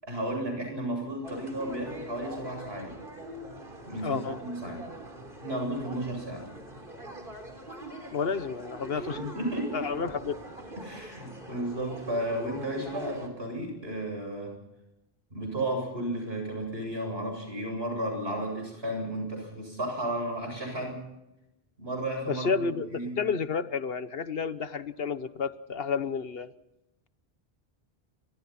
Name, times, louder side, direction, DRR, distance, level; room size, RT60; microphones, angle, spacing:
voice 1, 0.0-3.0 3.8-4.9 5.4-6.5 8.9-9.9 10.8-14.5 15.3-21.0 21.8-23.2, right 1 dB, 80° right, 3 dB, 8.3 m, -33 dB
sound 1, 1.2-13.3, right 1 dB, 60° right, 4.0 m, -43 dB
voice 2, 4.0-4.4 8.1-9.2 9.7-10.4 22.2-26.5, left 5 dB, 70° left, 13 dB, 1.3 m, -31 dB
29.5 x 25.5 x 4.3 m, 0.92 s
omnidirectional pair, 1.0 m